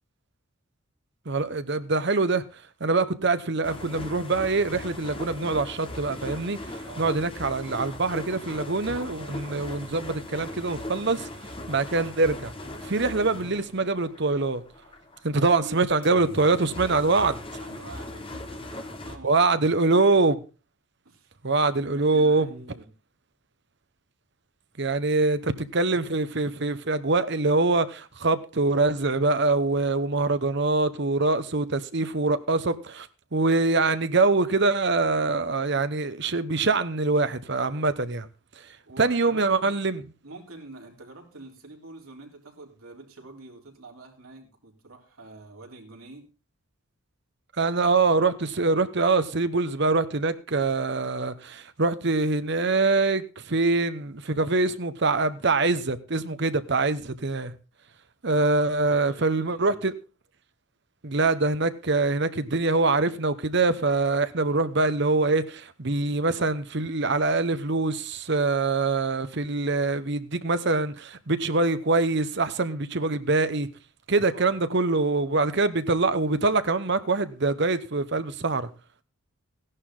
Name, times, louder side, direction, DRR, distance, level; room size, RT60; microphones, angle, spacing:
voice 1, 1.3-2.4 2.8-11.3 11.7-12.5 12.8-14.6 15.2-17.4 19.2-20.4 21.4-22.5 24.8-33.1 33.3-38.3 39.0-40.0 47.6-57.5 58.2-59.9 61.0-73.7 74.1-78.7, right 3 dB, 55° right, 1.0 m, -24 dB
sound 1, 3.6-15.6 15.9-19.2, left 1 dB, 25° left, 1.6 m, -39 dB
voice 2, 15.4-16.4 17.6-19.7 21.0-21.3 21.8-22.9 38.9-39.7 40.2-46.3 58.3-59.8 74.2-74.5, right 2 dB, 80° right, 3.9 m, -46 dB
16.0 x 11.0 x 3.8 m
head